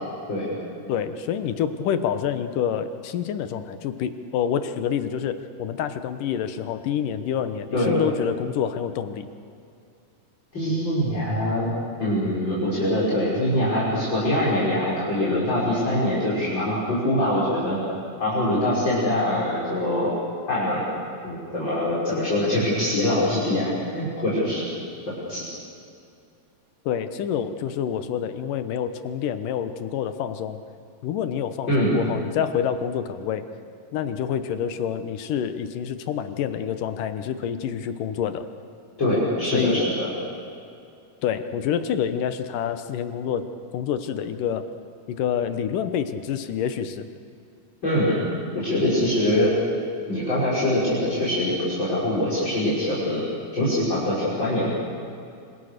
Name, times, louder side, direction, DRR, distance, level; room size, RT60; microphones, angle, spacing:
voice 1, 0.9-9.3 26.9-30.6 31.0-33.4 33.9-38.5 39.5-39.8 41.2-44.7 45.1-47.0, left 8 dB, 75° left, 10 dB, 2.7 m, -27 dB
voice 2, 10.5-11.7 12.0-17.8 18.2-20.1 20.5-20.8 21.2-24.6 25.3-25.4 31.7-31.9 39.0-40.1 47.8-48.2 48.5-49.5 50.1-53.2 53.5-54.7, left 1 dB, 30° left, -8 dB, 6.4 m, -23 dB
26.5 x 26.0 x 6.7 m, 2.5 s
omnidirectional pair, 3.9 m